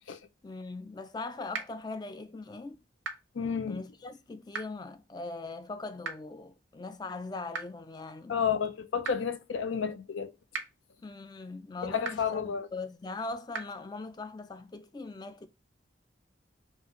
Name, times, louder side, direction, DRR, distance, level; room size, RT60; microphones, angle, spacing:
voice 1, 0.4-2.8 3.7-8.5 11.0-15.5, left 3 dB, 20° left, 0.3 m, -40 dB
sound 1, 1.5-1.6 3.0-3.1 4.5-4.6 6.0-6.1 7.5-7.6 9.0-9.1 10.5-10.6 12.0-12.1 13.5-13.6, right 4 dB, 90° right, 0.7 m, -34 dB
voice 2, 3.4-3.8 8.3-10.3 11.8-12.7, left 7 dB, 85° left, 0.5 m, -31 dB
5.4 x 2.5 x 2.8 m
head